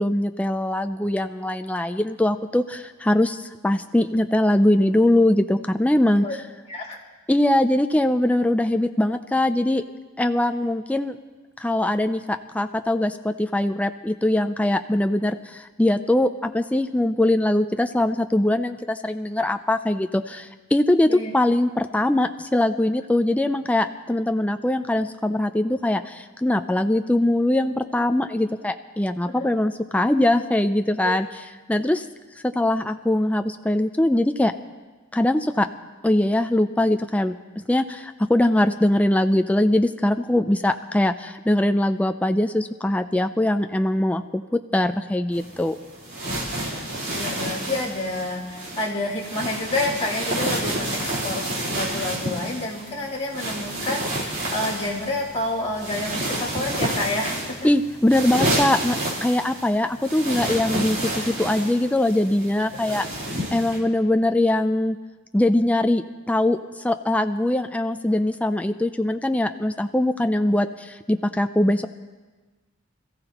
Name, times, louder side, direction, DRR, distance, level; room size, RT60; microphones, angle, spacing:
voice 1, 0.0-6.3 7.3-9.8 10.2-11.2 11.6-31.3 31.7-32.1 32.4-34.5 35.1-35.7 36.0-37.3 37.7-45.7 57.6-63.0 63.5-65.0 65.3-71.9, left 1 dB, 5° left, 7 dB, 0.4 m, -22 dB
sound 1, 45.3-63.8, right 1 dB, 45° right, 3.7 m, -30 dB
voice 2, 47.1-57.7 62.8-63.1, left 2 dB, 30° left, -7 dB, 3.3 m, -29 dB
26.0 x 14.5 x 3.0 m, 1.3 s
head